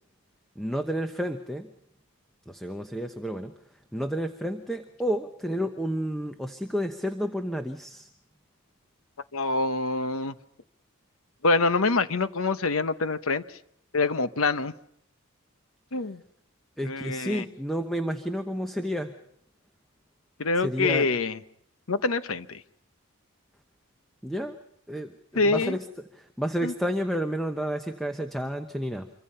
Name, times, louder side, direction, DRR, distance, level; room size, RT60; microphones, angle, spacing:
voice 1, 0.6-1.7 2.5-3.5 3.9-8.1 16.8-19.1 20.6-21.1 24.2-24.6 24.9-25.8 26.1-29.1, equal, ahead, 6 dB, 0.9 m, -30 dB
voice 2, 9.3-10.3 11.4-13.4 13.9-14.7 15.9-16.2 16.8-17.5 20.4-21.4 21.9-22.6 25.3-25.8 26.6-26.7, left 3 dB, 70° left, 12 dB, 1.0 m, -25 dB
26.5 x 24.5 x 5.6 m, 0.73 s
head